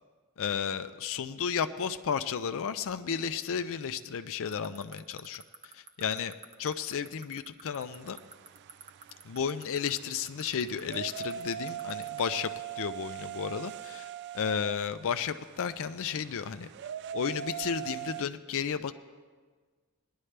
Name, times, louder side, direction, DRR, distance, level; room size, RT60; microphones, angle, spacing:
voice 1, 0.4-5.4 5.7-6.3 6.6-8.2 9.3-14.1 14.3-16.7 17.1-18.9, left 7 dB, 65° left, 10 dB, 0.4 m, -33 dB
sound 1, 4.5-12.2, right 6 dB, 30° right, 0.9 m, -46 dB
sound 2, 7.8-18.2, right 10 dB, 50° right, 0.3 m, -41 dB
19.5 x 11.0 x 3.3 m, 1.5 s
head